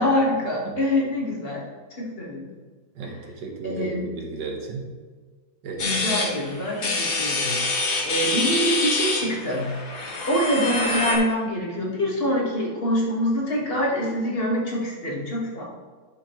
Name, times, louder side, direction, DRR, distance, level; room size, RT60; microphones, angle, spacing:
voice 1, 0.0-1.6 2.0-2.5 3.0-3.2 3.6-4.1 5.8-9.9 10.3-15.6, equal, 35° left, -3 dB, 1.9 m, -25 dB
voice 2, 3.0-4.9 5.6-6.1, right 4 dB, 80° right, 2 dB, 1.9 m, -34 dB
sound 1, 5.8-11.2, left 3 dB, 65° left, 2.0 m, -26 dB
11.0 x 6.9 x 3.2 m, 1.5 s
omnidirectional pair, 1.9 m